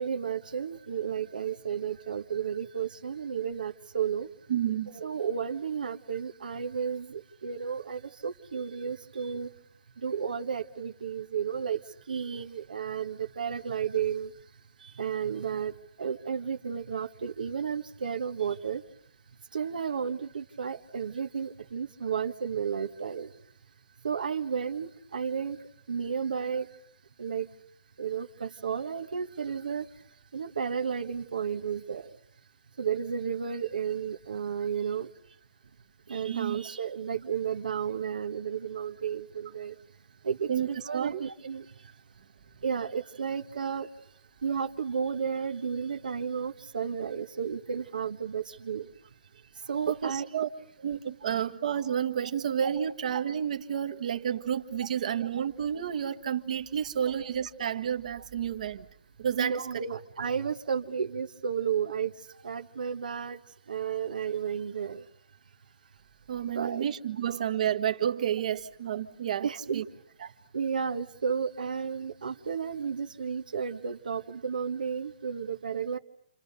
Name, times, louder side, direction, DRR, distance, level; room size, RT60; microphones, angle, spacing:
voice 1, 0.0-4.3 4.9-9.5 10.0-14.4 14.8-18.8 19.5-23.4 24.0-26.8 27.2-27.5 28.0-32.2 32.8-35.4 36.1-39.8 40.2-42.0 42.6-43.9 44.4-48.9 49.5-50.4 59.3-65.1 66.4-66.8 69.4-69.8 70.5-76.0, right 7 dB, 80° right, 1.5 m, -33 dB
voice 2, 4.5-4.9 36.3-36.6 40.5-40.7 40.9-41.2 49.9-50.5 50.8-58.8 59.2-59.6 66.3-69.5 69.7-69.8, right 9 dB, 60° right, 1.7 m, -30 dB
29.0 x 27.0 x 6.8 m
hypercardioid pair, 155°, 5 cm